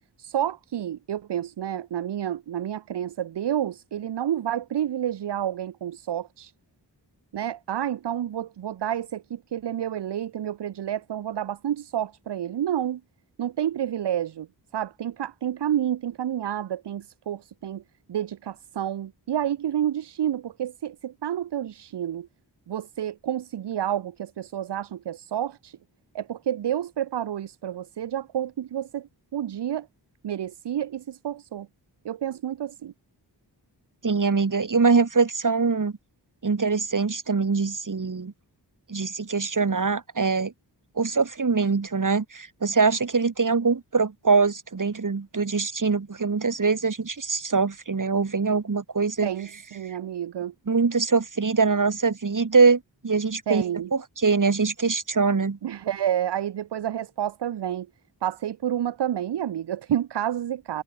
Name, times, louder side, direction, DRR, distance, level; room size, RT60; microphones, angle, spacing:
voice 1, 0.2-6.5 7.3-13.0 13.4-14.5 14.7-17.8 18.1-22.3 22.7-25.8 26.1-29.1 29.3-29.9 30.2-31.7 32.0-32.9 49.2-50.5 53.5-53.9 55.6-57.9 58.2-60.8, right 10 dB, 75° right, 0.7 m, -29 dB
voice 2, 34.0-35.9 36.4-38.3 38.9-40.5 41.0-49.3 50.7-53.6 53.9-55.6, right 4 dB, 45° right, 2.9 m, -23 dB
wide cardioid pair, 80°, 42 cm